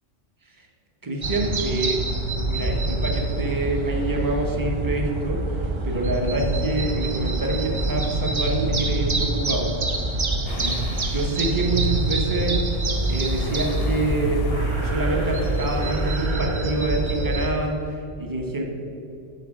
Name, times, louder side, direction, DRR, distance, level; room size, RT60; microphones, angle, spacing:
voice 1, 1.0-2.0 2.5-9.7 10.6-14.4 14.8-18.6, right 2 dB, 20° right, 1 dB, 0.7 m, -26 dB
sound 1, 1.2-17.5, right 2 dB, 50° right, 0.3 m, -25 dB
sound 2, 10.5-16.4, left 6 dB, 65° left, 0.7 m, -40 dB
8.4 x 3.8 x 6.3 m, 2.7 s
omnidirectional pair, 1.2 m